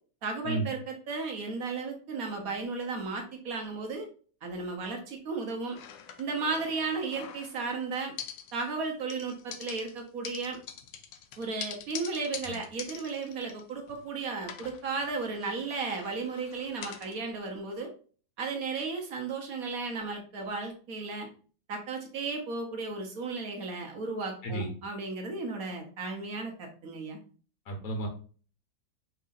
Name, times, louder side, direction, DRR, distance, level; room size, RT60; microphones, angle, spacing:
voice 1, 0.2-4.1 4.4-5.8 6.2-8.1 8.5-10.6 11.4-17.9 18.4-21.3 21.7-27.2, right 4 dB, 55° right, 2 dB, 1.2 m, -34 dB
sound 1, 5.7-7.8 8.2-8.8 9.1-14.1 14.4-17.2, left 8 dB, 75° left, 1.2 m, -44 dB
voice 2, 27.7-28.1, right 1 dB, 50° left, 2 dB, 1.4 m, -32 dB
5.5 x 3.6 x 2.5 m, 0.40 s
omnidirectional pair, 2.1 m